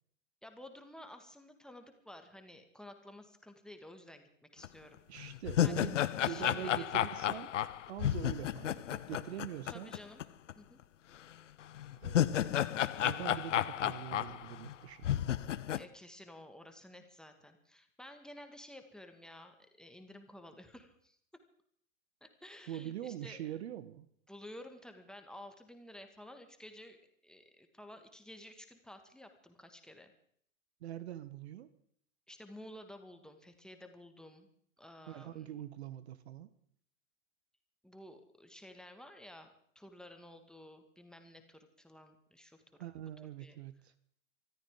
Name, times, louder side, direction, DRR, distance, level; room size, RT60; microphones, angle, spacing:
voice 1, 0.4-5.0 5.6-5.9 6.2-7.5 8.2-8.4 9.7-10.2 10.6-10.8 15.7-21.2 22.2-23.5 24.3-30.1 32.3-34.5 34.8-35.5 37.8-42.6 43.4-43.6, left 1 dB, ahead, 6 dB, 1.7 m, -53 dB
sound 1, 4.6-4.7 5.2-10.2 10.5-10.6 11.8-14.7 15.0-15.8, left 11 dB, 65° left, 0.7 m, -32 dB
voice 2, 5.1-6.0 6.3-7.5 7.9-9.9 12.0-12.6 13.0-15.2 22.7-24.1 30.8-31.7 35.1-36.5 42.8-43.9, right 11 dB, 55° right, 15 dB, 1.0 m, -43 dB
25.0 x 14.0 x 3.7 m, 0.64 s
figure-of-eight pair, 100°, 40 cm